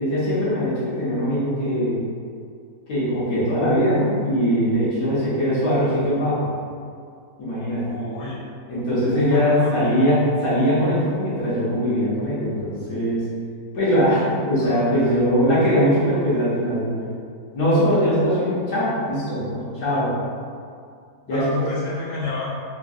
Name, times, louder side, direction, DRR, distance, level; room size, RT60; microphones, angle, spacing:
voice 1, 0.0-2.0 2.9-6.5 7.4-7.8 8.7-13.2 13.7-16.9 17.5-20.1 21.3-21.4, equal, 75° left, -10 dB, 1.6 m, -21 dB
voice 2, 7.8-8.4 9.0-10.1 13.9-15.0 21.3-22.5, left 3 dB, 30° left, -12 dB, 1.2 m, -31 dB
3.8 x 2.3 x 2.6 m, 2.2 s
omnidirectional pair, 1.6 m